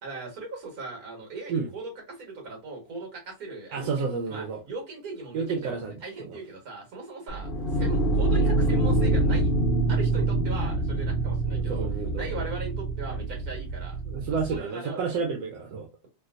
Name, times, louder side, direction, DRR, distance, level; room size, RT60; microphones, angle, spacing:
voice 1, 0.0-9.5 9.9-11.9 12.1-14.0 14.5-15.0, right 3 dB, 55° right, 1.8 m, -39 dB
voice 2, 3.7-4.6 5.3-6.4 11.5-12.3 14.1-15.9, right 5 dB, 80° right, 1.3 m, -31 dB
sound 1, 7.3-14.6, right 2 dB, 70° left, 0.5 m, -25 dB
3.4 x 2.5 x 2.4 m
omnidirectional pair, 2.0 m